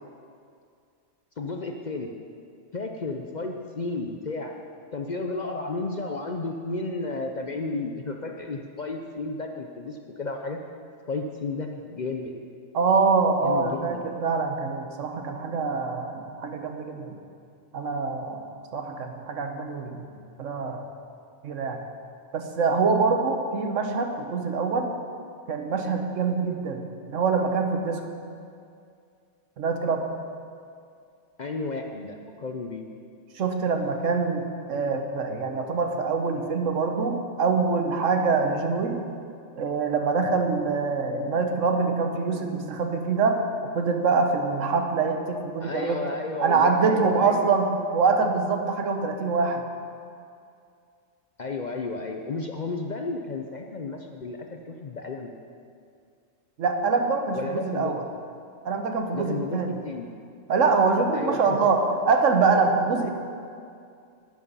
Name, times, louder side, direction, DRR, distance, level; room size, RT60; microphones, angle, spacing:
voice 1, 1.4-2.1 2.7-4.5 4.9-10.6 11.1-12.3 13.4-14.0 31.4-32.8 45.6-47.5 51.4-55.3 57.3-57.9 59.1-60.1 61.1-61.7, left 3 dB, 45° left, 3 dB, 0.6 m, -32 dB
voice 2, 12.7-17.1 17.7-18.4 18.7-20.1 20.4-20.8 21.4-21.8 22.3-24.9 25.5-26.8 27.1-28.1 29.6-30.1 33.4-39.0 39.6-43.4 43.7-46.1 46.4-49.6 56.6-58.0 58.6-59.8 60.5-63.1, right 4 dB, 75° right, 5 dB, 1.3 m, -24 dB
10.5 x 9.5 x 5.5 m, 2.4 s
omnidirectional pair, 1.3 m